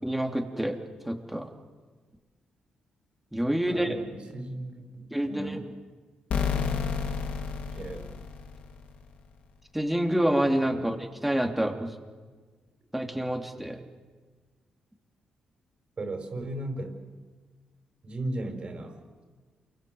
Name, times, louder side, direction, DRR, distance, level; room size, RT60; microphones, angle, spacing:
voice 1, 0.0-0.8 1.1-1.5 3.3-4.0 5.1-5.6 9.7-12.0 12.9-13.8, right 1 dB, 5° right, 4 dB, 3.2 m, -27 dB
voice 2, 3.7-5.7 7.7-8.1 10.7-10.9 16.0-17.0 18.0-19.0, right 1 dB, 45° right, 6 dB, 5.3 m, -36 dB
sound 1, 6.3-9.0, left 6 dB, 80° left, 3.1 m, -30 dB
28.5 x 23.5 x 8.0 m, 1.4 s
cardioid pair, 85°, 3 cm